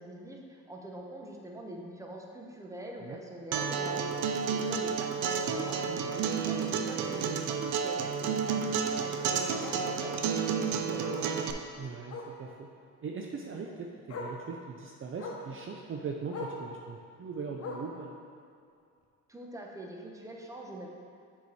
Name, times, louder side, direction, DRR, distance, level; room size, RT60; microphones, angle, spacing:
voice 1, 0.0-5.8 6.1-11.3 19.3-20.9, right 1 dB, 10° right, 0 dB, 0.9 m, -44 dB
Acoustic guitar, 3.5-11.5, right 6 dB, 90° right, 0.5 m, -31 dB
Bark, 4.6-4.7 5.1-5.3 5.6-5.7 6.0-6.1 7.5-7.6 10.1-10.2 11.0-11.3 12.1-12.4 13.6-13.7 14.1-14.4 15.2-15.5 16.3-16.6 17.6-18.0 19.0-19.1, left 3 dB, 55° left, 1.1 m, -41 dB
voice 2, 11.8-12.7 13.0-18.1, right 5 dB, 45° right, 1 dB, 0.6 m, -40 dB
6.7 x 5.0 x 4.1 m, 2.4 s
cardioid pair, 90°, 30 cm